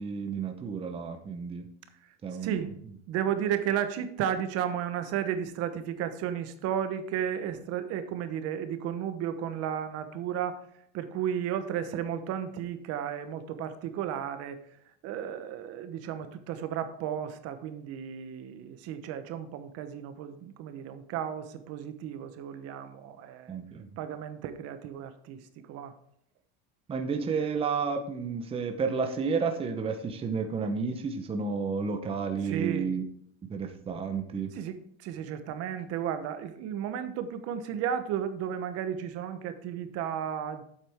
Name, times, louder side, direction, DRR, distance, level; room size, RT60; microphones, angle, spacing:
voice 1, 0.0-1.7 2.2-2.7 23.5-23.9 26.9-33.0 33.5-34.5, right 5 dB, 20° right, 5 dB, 0.8 m, -31 dB
voice 2, 2.4-2.7 3.1-10.6 10.9-14.6 15.0-23.5 24.0-25.9 32.4-32.9 34.5-40.6, right 9 dB, 50° right, 10 dB, 1.0 m, -33 dB
8.6 x 7.8 x 3.6 m, 0.69 s
supercardioid pair, 140°, 30 cm